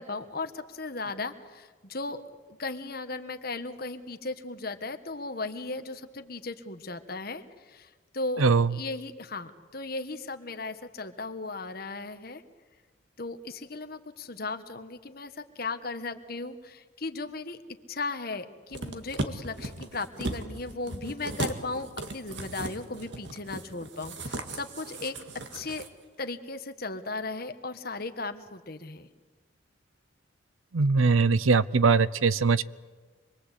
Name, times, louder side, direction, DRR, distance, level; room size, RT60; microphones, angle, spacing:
voice 1, 0.0-2.2 2.6-12.4 13.2-17.6 17.9-25.2 25.5-25.8 26.2-29.1, left 3 dB, 50° left, 8 dB, 1.4 m, -36 dB
voice 2, 8.4-8.7 30.7-32.6, right 4 dB, 90° right, 18 dB, 0.7 m, -21 dB
sound 1, 18.7-25.9 26.2-26.3, right 2 dB, 60° right, 1.9 m, -37 dB
26.0 x 22.0 x 8.3 m, 1.4 s
head